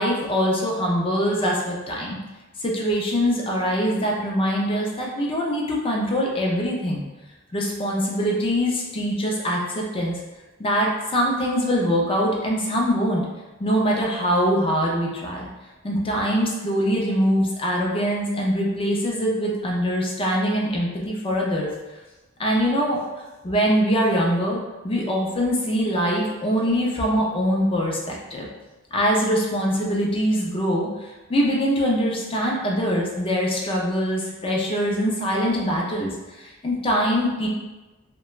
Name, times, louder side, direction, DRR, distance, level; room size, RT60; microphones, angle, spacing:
voice 1, 0.0-2.2 2.6-7.0 7.5-10.2 10.6-13.2 13.6-15.5 15.8-21.7 22.4-23.0 23.4-24.6 24.8-28.5 28.9-37.5, equal, 25° left, -2 dB, 0.5 m, -23 dB
2.3 x 2.2 x 3.0 m, 1.1 s
head